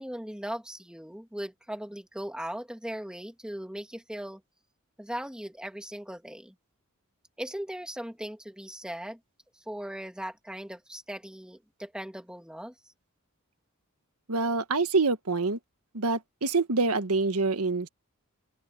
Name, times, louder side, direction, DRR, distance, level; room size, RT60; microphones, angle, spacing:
voice 1, 0.0-4.4 5.0-6.5 7.4-9.2 9.6-12.7, equal, 5° right, 2.5 m, -38 dB
voice 2, 14.3-15.6 15.9-17.9, right 3 dB, 85° right, 1.5 m, -26 dB
open air
head